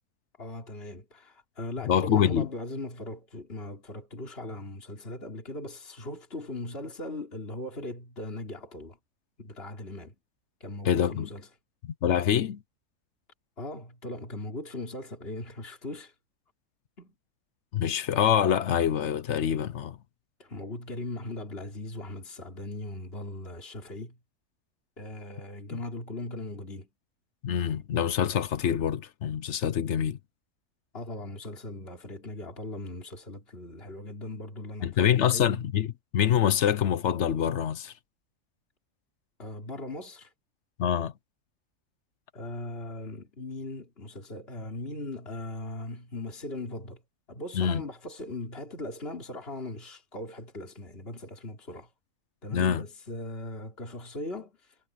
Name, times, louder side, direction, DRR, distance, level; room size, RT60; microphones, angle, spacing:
voice 1, 0.4-9.0 9.4-10.2 10.6-11.5 13.6-16.1 17.0-17.1 20.4-24.2 25.0-26.9 30.9-35.7 39.4-40.3 42.3-47.0 47.3-51.9 52.4-54.8, left 2 dB, 40° left, 4.0 m, -39 dB
voice 2, 1.8-2.5 10.8-11.3 11.8-12.6 17.7-20.0 27.4-30.2 34.8-37.9 40.8-41.1 47.5-47.8 52.5-52.8, left 9 dB, 55° left, 0.9 m, -25 dB
omnidirectional pair, 1.6 m